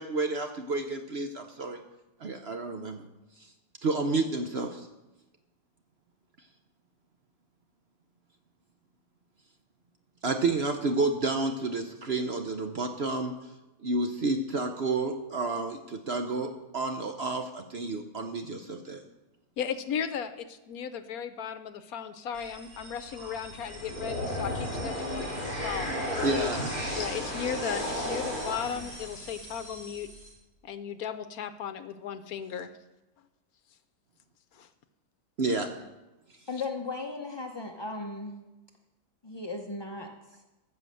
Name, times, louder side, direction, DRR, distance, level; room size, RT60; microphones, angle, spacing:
voice 1, 0.0-1.8 2.2-3.0 3.8-4.9 10.2-13.3 13.8-19.0 26.2-26.7 35.4-35.8, right 3 dB, 50° right, 5 dB, 0.8 m, -30 dB
voice 2, 19.6-26.5 26.9-30.1 30.6-32.7 34.5-34.7, left 8 dB, 70° left, 10 dB, 1.1 m, -36 dB
sound 1, 22.3-30.3, equal, 25° right, 4.4 m, -35 dB
voice 3, 36.5-38.4 39.2-40.5, left 3 dB, 35° left, 2 dB, 0.4 m, -37 dB
13.5 x 5.7 x 7.6 m, 1.0 s
omnidirectional pair, 1.8 m